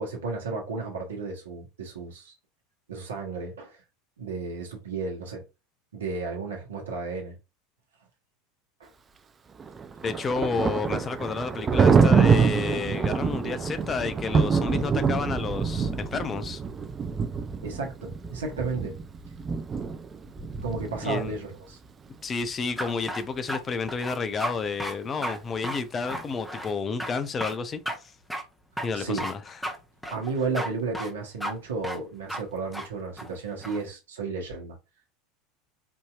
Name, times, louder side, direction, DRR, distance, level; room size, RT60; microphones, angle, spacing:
voice 1, 0.0-2.3 2.9-3.8 4.2-5.4 5.9-7.4 8.8-8.9 17.6-19.0 20.6-21.8 28.9-29.3 30.1-34.8, right 4 dB, 70° right, 1.0 m, -33 dB
Thunder, 9.6-21.4, right 5 dB, 25° right, 0.5 m, -25 dB
voice 2, 10.0-16.6 21.0-21.4 22.2-28.1 28.8-29.5, left 5 dB, 25° left, 0.5 m, -30 dB
sound 1, 22.8-23.6 23.9-24.5 24.8-25.0 25.2-25.4 25.6-26.7 27.0-27.1 27.4-27.6 27.9-28.0 28.3-28.4 28.8-29.3 29.6-29.8 30.0-30.7 30.9-31.1 31.4-31.5 31.8-32.0 32.3-32.4 32.7-32.9 33.2-33.8, equal, ahead, 0.8 m, -33 dB
4.6 x 2.8 x 2.3 m
figure-of-eight pair, 80°, 0 cm